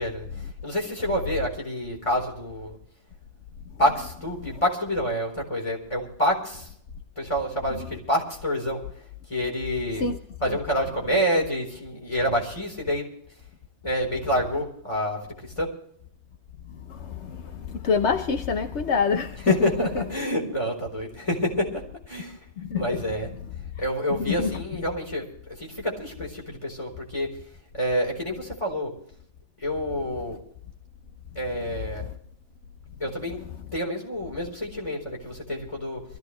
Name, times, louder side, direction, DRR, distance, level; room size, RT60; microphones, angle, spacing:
voice 1, 0.0-2.8 3.8-6.7 7.2-8.8 9.3-10.0 10.4-13.1 13.8-15.7 19.5-22.4 22.7-23.3 23.8-27.3 27.7-28.9 29.6-30.4 31.3-32.1 33.0-33.4 33.7-36.0, equal, 25° left, 4.1 m, -28 dB
voice 2, 16.7-20.0 22.6-23.1 24.1-24.6 31.7-32.2, left 5 dB, 75° left, 1.2 m, -27 dB
23.5 x 15.0 x 3.2 m
omnidirectional pair, 1.2 m